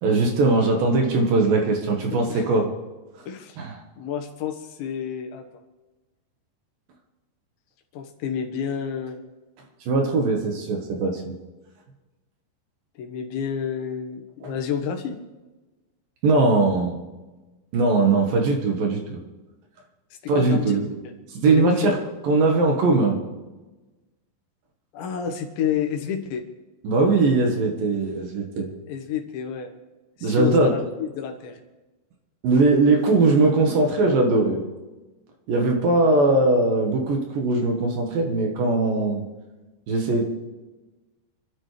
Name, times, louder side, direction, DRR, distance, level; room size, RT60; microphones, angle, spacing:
voice 1, 0.0-2.7 3.6-3.7 9.9-11.4 16.2-16.9 17.7-19.2 20.3-20.9 21.4-22.0 22.2-23.2 26.8-28.7 30.2-30.7 32.4-34.6 35.5-39.2 39.9-40.2, right 3 dB, 60° right, 2 dB, 2.8 m, -20 dB
voice 2, 2.1-2.5 3.3-3.6 4.0-5.5 7.9-9.2 13.0-15.2 20.2-20.7 21.0-21.1 21.4-21.9 24.9-26.4 28.9-29.7 30.2-31.6, left 8 dB, 85° left, 5 dB, 3.6 m, -29 dB
27.0 x 12.5 x 3.3 m, 1.2 s
omnidirectional pair, 5.0 m